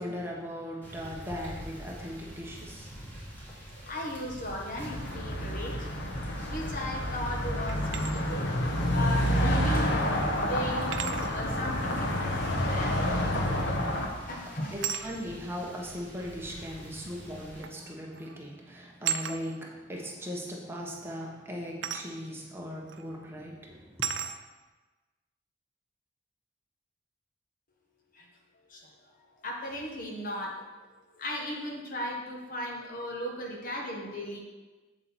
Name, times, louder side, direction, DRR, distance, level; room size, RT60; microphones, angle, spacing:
voice 1, 0.0-3.2 13.9-14.3 14.7-24.1, equal, 15° right, -2 dB, 1.3 m, -39 dB
sound 1, 0.8-17.6, equal, 10° left, 2.9 m, -47 dB
voice 2, 3.7-7.8 8.1-8.5 8.8-13.2 13.8-15.1 28.1-28.3 28.7-28.9 29.4-30.7 31.1-34.4, left 1 dB, 50° left, 0 dB, 1.5 m, -37 dB
sound 2, 4.8-14.1, equal, 70° left, 1.2 m, -29 dB
sound 3, 7.7-8.1 9.7-9.8 10.9-11.4 13.6-13.9 14.8-15.1 16.3-16.4 17.6-17.8 18.1-18.4 19.0-19.4 21.8-22.1 22.9-23.0 24.0-24.4, right 8 dB, 90° right, 0.6 m, -34 dB
8.0 x 7.4 x 4.5 m, 1.2 s
head